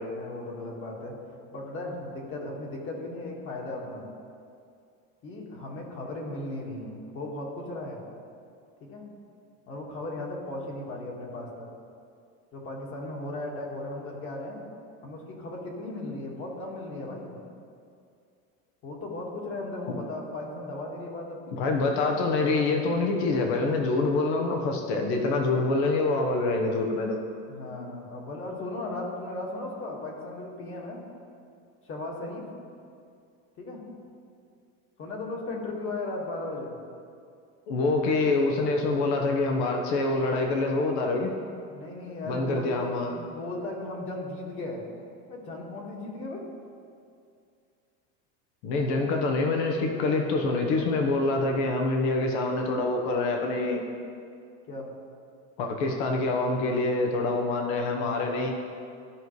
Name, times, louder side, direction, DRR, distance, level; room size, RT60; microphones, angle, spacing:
voice 1, 0.1-1.2 1.5-4.0 5.2-8.0 8.8-9.1 9.7-11.7 12.5-14.6 15.0-17.4 18.8-22.0 27.5-31.0 31.8-32.4 33.6-33.8 35.0-36.8 41.7-44.8 45.3-46.4 48.7-49.2 54.7-54.9, left 2 dB, 40° left, -1 dB, 1.8 m, -36 dB
voice 2, 21.6-27.2 37.7-41.3 42.3-43.1 48.6-53.8 55.6-58.5, left 3 dB, 70° left, 2 dB, 1.2 m, -26 dB
14.0 x 5.3 x 3.2 m, 2.4 s
supercardioid pair, 140°, 34 cm